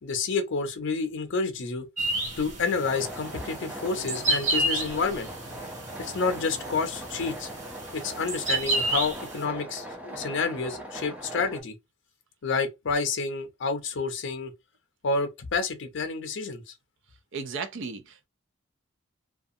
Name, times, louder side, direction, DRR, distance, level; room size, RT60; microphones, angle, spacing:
voice 1, 0.0-1.9 2.4-5.3 6.0-7.5 7.9-11.7 12.4-14.5 15.0-16.6, left 4 dB, 60° left, 0.5 m, -29 dB
sound 1, 2.0-9.4, right 1 dB, 35° right, 1.0 m, -31 dB
sound 2, 2.8-11.6, right 1 dB, 5° right, 0.5 m, -40 dB
voice 2, 17.3-18.3, right 5 dB, 60° right, 0.5 m, -35 dB
2.4 x 2.3 x 2.6 m
head